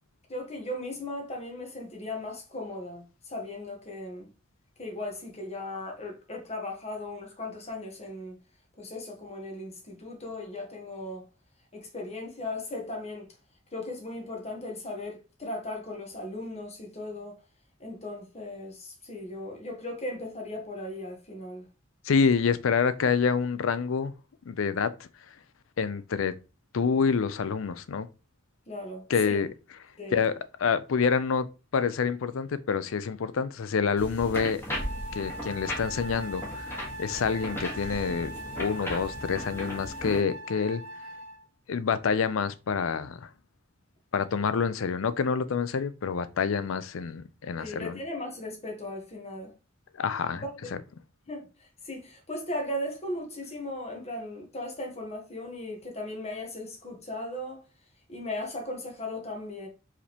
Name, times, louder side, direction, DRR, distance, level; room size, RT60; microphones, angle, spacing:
voice 1, 0.3-4.3 4.8-8.4 8.8-11.3 11.7-13.3 13.7-17.4 17.8-21.7 28.7-29.4 30.0-30.2 47.6-49.5 50.3-50.7 51.3-51.5 51.8-57.6 58.1-59.7, left 1 dB, 35° left, 1.3 m, -37 dB
voice 2, 22.0-24.1 24.5-25.1 25.8-26.3 26.7-28.1 29.1-29.5 30.1-30.3 30.6-31.5 31.7-34.6 35.1-38.3 38.6-40.8 41.7-43.3 44.1-48.0 50.0-50.4, left 5 dB, 75° left, 0.5 m, -27 dB
sound 1, 34.0-40.2, equal, 10° left, 1.4 m, -37 dB
Wind instrument woodwind instrument, 34.7-41.5, equal, 70° right, 1.0 m, -41 dB
4.7 x 3.4 x 2.9 m
head